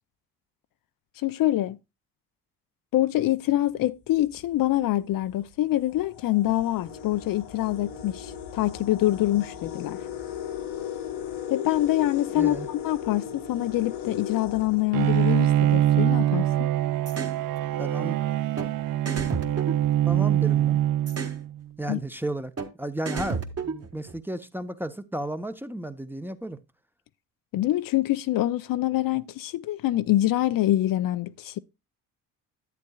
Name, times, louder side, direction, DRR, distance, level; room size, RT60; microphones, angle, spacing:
voice 1, 1.2-1.8 2.9-10.0 11.5-16.7 21.9-22.0 27.5-31.6, left 15 dB, 60° left, 0.5 m, -25 dB
sound 1, 4.4-4.5 5.3-5.4 5.8-15.6, left 9 dB, 90° left, 1.5 m, -37 dB
voice 2, 12.3-12.7 17.8-18.2 20.1-20.8 21.8-22.5 22.8-26.6, right 1 dB, 5° right, 0.7 m, -33 dB
Bowed string instrument, 14.9-21.6, right 12 dB, 60° right, 0.5 m, -24 dB
sound 2, 17.1-17.4 18.6-18.7 19.1-20.5 21.1-21.4 22.6-22.7 23.1-24.2, right 4 dB, 40° right, 1.6 m, -32 dB
10.5 x 8.2 x 2.3 m
supercardioid pair, 60°, 38 cm